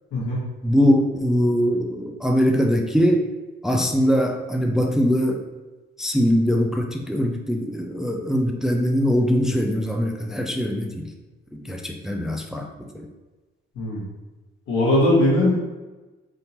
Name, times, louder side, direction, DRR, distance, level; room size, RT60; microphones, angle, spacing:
voice 1, 0.1-0.4 13.7-14.1 14.7-15.8, left 1 dB, 90° left, -6 dB, 1.4 m, -20 dB
voice 2, 0.6-3.2 3.6-5.4 6.0-11.1 11.5-12.7 12.9-13.1, equal, ahead, 2 dB, 0.4 m, -22 dB
3.6 x 2.8 x 2.7 m, 1.2 s
cardioid pair, 90°, 20 cm